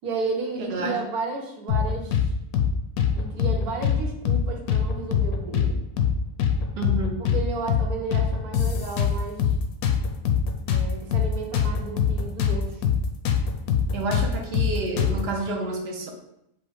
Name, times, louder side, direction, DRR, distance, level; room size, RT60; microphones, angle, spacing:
voice 1, 0.0-2.3 3.1-5.8 7.2-9.5 10.7-12.8, right 3 dB, 75° right, 1 dB, 1.3 m, -33 dB
voice 2, 0.6-1.0 6.8-7.2 13.9-16.1, right 2 dB, 55° right, 2 dB, 0.7 m, -29 dB
sound 1, 1.7-2.3 2.5-2.7 3.0-4.0 4.3-4.4 4.7-5.7 6.0-6.1 6.4-7.4 7.7-7.8 8.1-9.6 9.8-12.6 12.8-13.0 13.3-15.3, left 8 dB, 75° left, 1.1 m, -23 dB
5.1 x 2.1 x 4.7 m, 0.80 s
omnidirectional pair, 1.6 m